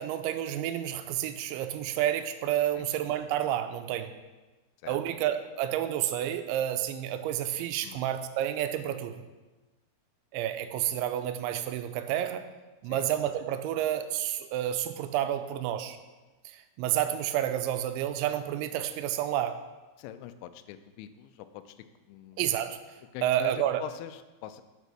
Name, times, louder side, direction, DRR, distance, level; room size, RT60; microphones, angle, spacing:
voice 1, 0.0-4.1 4.8-9.2 10.3-12.5 12.8-16.0 16.5-19.6 22.4-22.8 23.2-23.8, right 11 dB, 85° right, 9 dB, 2.9 m, -30 dB
voice 2, 20.0-22.4 23.1-24.6, left 11 dB, 85° left, 11 dB, 2.9 m, -43 dB
8.1 x 5.2 x 6.2 m, 1.2 s
omnidirectional pair, 5.2 m